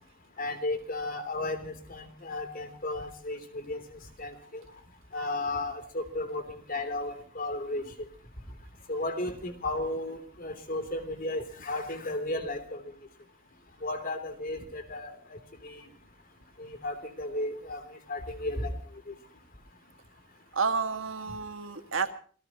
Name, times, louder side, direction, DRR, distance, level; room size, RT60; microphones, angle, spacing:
voice 1, 0.4-3.8 4.2-4.6 5.1-7.8 8.9-12.8 13.8-15.4 15.6-15.8 16.6-17.8 18.1-18.7 19.1-19.2, left 2 dB, 45° left, 8 dB, 3.3 m, -34 dB
voice 2, 20.5-22.1, right 5 dB, 70° right, 8 dB, 2.0 m, -30 dB
27.0 x 18.0 x 3.0 m, 0.43 s
head